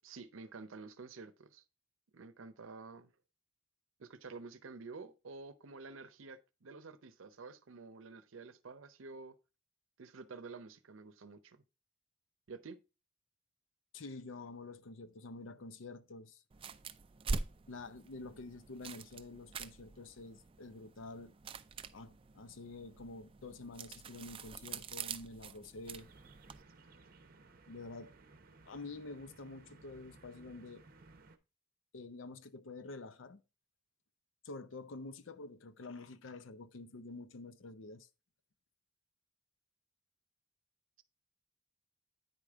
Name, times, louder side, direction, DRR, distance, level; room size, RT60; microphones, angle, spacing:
voice 1, 0.0-1.6 2.1-3.1 4.0-9.3 10.0-11.6 12.5-12.8, right 4 dB, 90° right, 0.7 m, -50 dB
voice 2, 13.9-16.4 17.7-21.3 21.9-26.1 27.7-28.1 28.7-30.8 31.9-33.4 34.4-38.1, left 3 dB, 75° left, 0.6 m, -48 dB
sound 1, 16.5-26.6, right 4 dB, 25° right, 0.4 m, -45 dB
sound 2, 25.9-31.4, right 3 dB, 50° right, 0.7 m, -60 dB
9.1 x 5.0 x 3.5 m
head